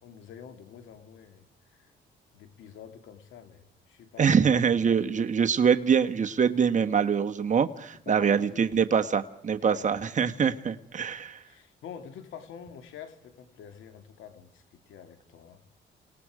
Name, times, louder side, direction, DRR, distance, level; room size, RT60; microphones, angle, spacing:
voice 1, 0.0-1.4 1.7-1.9 2.3-4.7 5.1-5.2 8.1-8.7 9.6-9.9 11.0-15.6, left 8 dB, 80° left, 8 dB, 2.5 m, -47 dB
voice 2, 4.2-11.4, right 7 dB, 40° right, 7 dB, 1.3 m, -24 dB
29.0 x 18.5 x 5.0 m, 0.67 s
cardioid pair, 90°, 20 cm